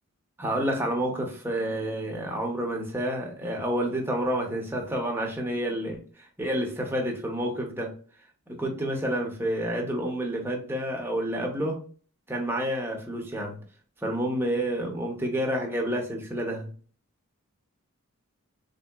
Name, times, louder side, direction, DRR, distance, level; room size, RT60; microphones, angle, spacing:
voice 1, 0.4-7.9 8.5-11.8 12.3-13.6 14.0-16.7, right 1 dB, 10° right, 0.6 m, -29 dB
3.6 x 2.7 x 2.3 m
head